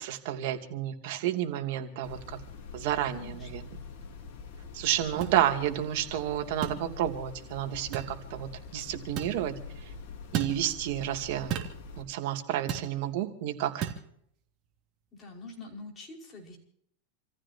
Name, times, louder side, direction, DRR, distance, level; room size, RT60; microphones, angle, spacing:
voice 1, 0.0-2.4 2.7-3.6 4.7-9.6 10.3-11.5 12.0-13.9, right 12 dB, 60° right, 4 dB, 2.7 m, -30 dB
sound 1, 2.0-12.0, left 4 dB, 55° left, 4.9 m, -45 dB
voice 2, 3.1-3.7 5.1-5.5 15.1-16.6, left 3 dB, 25° left, 0 dB, 5.5 m, -46 dB
sound 2, 5.2-5.4 6.6-6.8 7.9-8.1 9.2-9.4 10.3-10.6 11.5-11.8 12.7-12.9 13.8-14.0, right 10 dB, 40° right, 2.9 m, -33 dB
29.0 x 15.0 x 2.9 m, 0.69 s
supercardioid pair, 140°, 0 cm